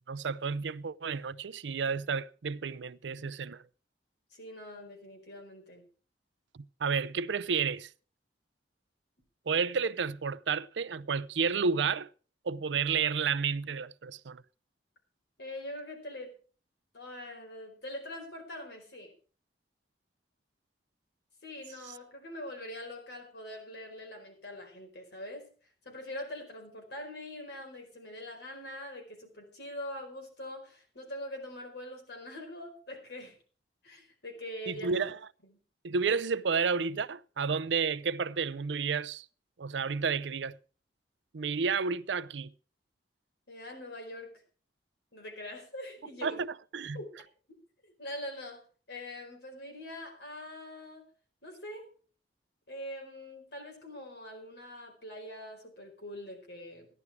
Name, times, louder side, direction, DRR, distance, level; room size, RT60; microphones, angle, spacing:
voice 1, 0.1-3.6 6.5-7.9 9.5-12.1 12.4-14.4 34.7-35.2 35.8-39.3 39.6-40.6 41.3-42.5 46.2-46.5 46.7-47.0, right 5 dB, 85° right, 0.5 m, -31 dB
voice 2, 4.3-5.9 15.4-16.3 16.9-19.1 21.4-25.5 25.8-33.4 33.8-35.1 43.5-44.4 45.1-46.4 46.9-47.1 47.8-48.6 48.9-51.0 51.4-51.9 52.7-56.9, left 1 dB, 70° left, 4.6 m, -43 dB
14.5 x 11.0 x 4.7 m
head